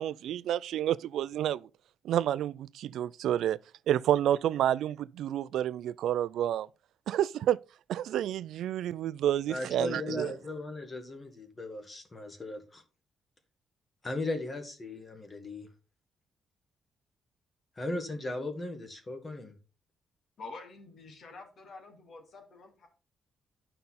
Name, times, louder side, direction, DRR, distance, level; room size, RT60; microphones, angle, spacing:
voice 1, 0.0-1.7 2.0-3.6 3.9-6.7 7.1-7.6 7.9-10.3, right 11 dB, 90° right, 0.3 m, -29 dB
voice 2, 9.5-12.8 14.0-15.7 17.8-19.6, left 2 dB, 25° left, 1.9 m, -37 dB
voice 3, 20.4-22.9, left 3 dB, 55° left, 2.9 m, -47 dB
11.5 x 5.4 x 4.2 m
cardioid pair, 140°, 0 cm